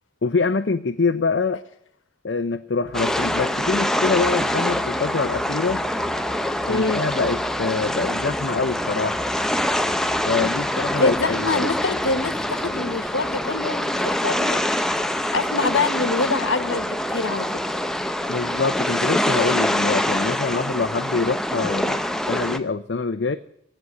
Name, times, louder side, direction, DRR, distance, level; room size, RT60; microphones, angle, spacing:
voice 1, 0.2-1.6 2.2-5.8 6.7-9.2 10.2-11.5 18.3-22.0 22.3-23.4, left 4 dB, 60° left, 7 dB, 0.6 m, -24 dB
sound 1, 2.8-12.8, equal, 45° right, 3.5 m, -42 dB
sound 2, 2.9-22.6, left 1 dB, 5° left, 0.6 m, -25 dB
voice 2, 6.7-7.0 11.0-14.8 15.3-17.5, left 3 dB, 85° left, 10 dB, 1.3 m, -25 dB
18.5 x 7.9 x 9.6 m, 0.70 s
head